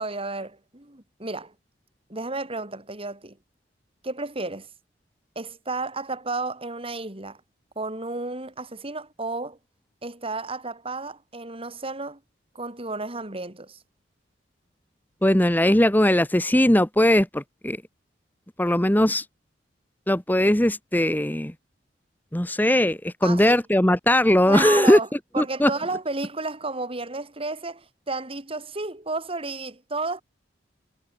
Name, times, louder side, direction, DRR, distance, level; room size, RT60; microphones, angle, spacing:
voice 1, 0.0-1.5 2.1-3.4 4.0-4.7 5.3-7.4 7.7-9.6 10.0-12.2 12.5-13.8 23.2-23.6 24.5-25.1 25.3-30.2, right 3 dB, 30° right, 3.5 m, -32 dB
voice 2, 15.2-17.8 18.6-19.2 20.1-21.5 22.3-25.0 25.4-25.7, left 1 dB, 10° left, 1.3 m, -19 dB
head